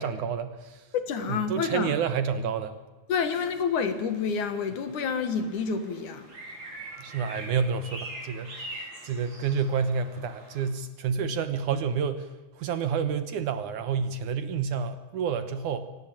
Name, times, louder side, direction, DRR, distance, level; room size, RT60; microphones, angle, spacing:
voice 1, 0.0-0.8 1.3-2.8 7.0-12.3 12.6-15.9, right 6 dB, 65° right, 12 dB, 2.3 m, -29 dB
voice 2, 0.9-1.9 3.1-6.3, left 6 dB, 60° left, 10 dB, 2.7 m, -28 dB
sound 1, 3.4-10.7, right 1 dB, 45° right, 7.6 m, -44 dB
24.5 x 18.0 x 8.8 m, 1.1 s
omnidirectional pair, 4.3 m